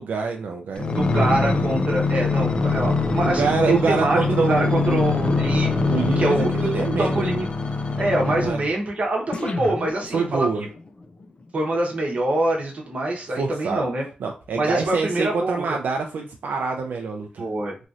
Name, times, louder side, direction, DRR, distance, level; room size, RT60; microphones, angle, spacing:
voice 1, 0.0-1.3 3.2-5.1 5.8-7.3 8.2-8.6 10.1-10.6 13.3-13.8 14.2-17.5, right 4 dB, 80° right, 2 dB, 0.3 m, -26 dB
sound 1, 0.8-8.7 9.3-10.6 11.2-11.3, left 3 dB, 35° left, 0.3 m, -24 dB
voice 2, 0.9-4.2 4.5-5.7 6.2-6.5 7.0-7.5 8.0-10.5 11.5-14.0 14.5-15.6 17.4-17.7, right 1 dB, 50° right, -1 dB, 0.9 m, -24 dB
3.0 x 2.7 x 2.4 m, 0.34 s
wide cardioid pair, 150°, 3 cm